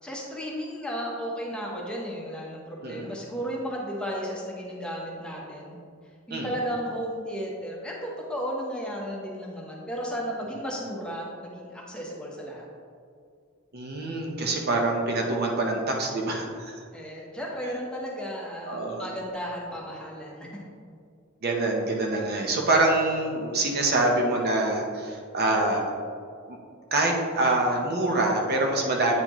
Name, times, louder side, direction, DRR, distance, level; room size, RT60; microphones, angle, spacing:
voice 1, 0.0-5.8 6.3-12.7 16.9-20.7, equal, 5° left, -3 dB, 0.9 m, -34 dB
voice 2, 2.8-3.1 6.3-6.5 13.7-16.8 18.7-19.1 21.4-25.8 26.5-26.6 26.9-29.2, right 2 dB, 50° right, 0 dB, 0.7 m, -25 dB
8.7 x 4.2 x 3.0 m, 2.3 s
head